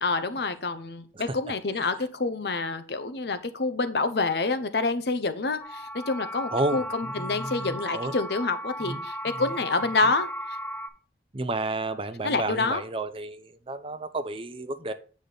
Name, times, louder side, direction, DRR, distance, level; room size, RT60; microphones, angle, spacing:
voice 1, 0.0-10.3 12.2-12.8, left 3 dB, 65° left, 10 dB, 0.8 m, -27 dB
sound 1, 5.6-10.9, equal, 10° left, 0.9 m, -36 dB
voice 2, 6.5-8.1 8.8-9.0 9.3-9.4 11.3-14.9, right 2 dB, 30° right, 10 dB, 0.6 m, -32 dB
8.4 x 5.2 x 3.9 m, 0.39 s
head